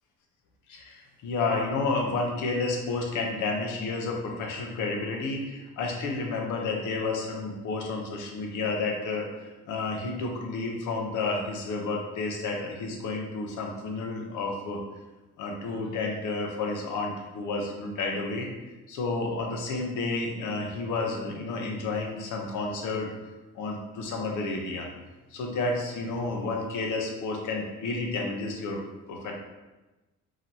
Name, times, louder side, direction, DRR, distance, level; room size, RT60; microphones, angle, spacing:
voice 1, 0.7-14.8 15.4-18.5 18.9-23.1 23.5-24.9 25.3-28.8 29.1-29.3, left 3 dB, 85° left, 1 dB, 0.9 m, -31 dB
5.0 x 2.9 x 2.8 m, 1.1 s
cardioid pair, 90°, 30 cm